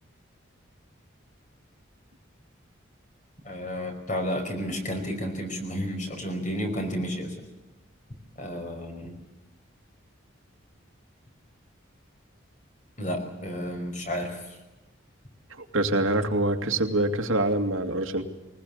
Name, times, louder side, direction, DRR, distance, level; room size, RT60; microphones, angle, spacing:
voice 1, 3.5-7.3 8.4-9.1 13.0-14.6, equal, 40° left, 4 dB, 5.2 m, -31 dB
voice 2, 15.6-18.3, right 2 dB, 85° right, 4 dB, 2.4 m, -25 dB
22.0 x 20.0 x 8.7 m, 1.1 s
head